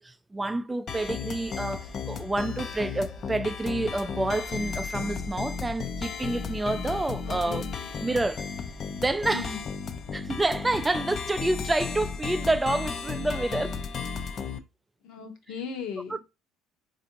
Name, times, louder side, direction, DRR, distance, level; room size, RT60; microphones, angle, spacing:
voice 1, 0.0-7.6 8.0-8.5 9.0-9.5 10.1-13.8, right 2 dB, 15° right, 0.4 m, -28 dB
sound 1, 0.9-14.6, left 6 dB, 45° left, 0.5 m, -34 dB
voice 2, 7.2-7.7 9.3-9.7 15.0-16.2, left 6 dB, 65° left, 0.9 m, -37 dB
4.2 x 2.5 x 2.9 m
hypercardioid pair, 70°, 0 cm